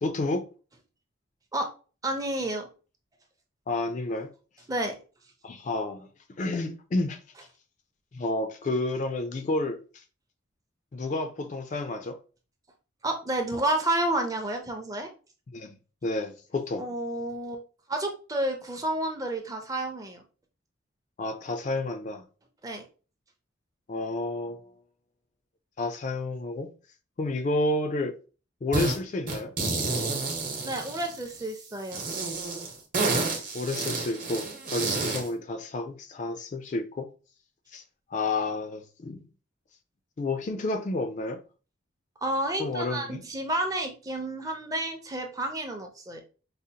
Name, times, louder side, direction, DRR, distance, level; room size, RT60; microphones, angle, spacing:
voice 1, 0.0-0.5 3.7-4.3 5.4-6.1 6.4-7.2 8.1-10.0 10.9-12.2 15.5-15.8 16.0-16.8 21.2-22.2 23.9-24.7 25.8-26.7 27.2-28.2 28.6-29.5 33.5-37.1 37.7-37.8 38.1-39.2 40.2-41.4 42.6-43.2, left 2 dB, 40° left, 0.3 m, -30 dB
voice 2, 2.0-2.7 4.7-5.0 13.0-15.1 16.8-17.6 17.9-20.2 22.6-22.8 30.6-32.0 42.2-46.2, right 1 dB, 15° right, 0.5 m, -30 dB
sound 1, 28.7-29.0 29.3-31.4 31.9-35.3, right 3 dB, 45° right, 0.9 m, -29 dB
4.9 x 2.0 x 2.7 m
head